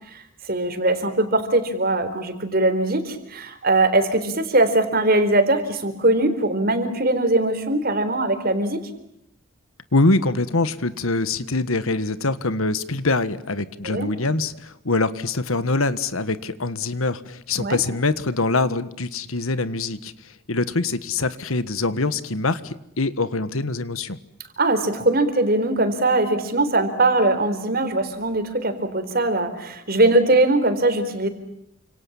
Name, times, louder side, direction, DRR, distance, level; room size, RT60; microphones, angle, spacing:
voice 1, 0.1-8.8 13.8-14.1 17.6-17.8 24.6-31.3, right 2 dB, 45° right, 9 dB, 4.1 m, -21 dB
voice 2, 9.9-24.2, left 3 dB, 80° left, 14 dB, 1.6 m, -24 dB
29.0 x 27.0 x 7.3 m, 0.77 s
head